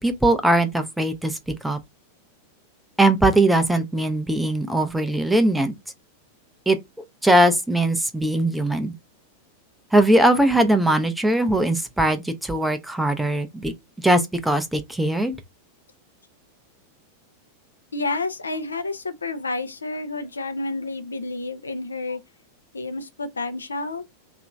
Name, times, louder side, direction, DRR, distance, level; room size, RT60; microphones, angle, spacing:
voice 1, 0.0-1.8 3.0-5.7 6.7-6.8 7.2-8.9 9.9-13.7 14.0-15.4, right 1 dB, 5° right, 0.5 m, -20 dB
voice 2, 17.9-22.2 22.7-24.0, left 3 dB, 75° left, 0.5 m, -30 dB
2.8 x 2.5 x 3.4 m
figure-of-eight pair, 90°, 0 cm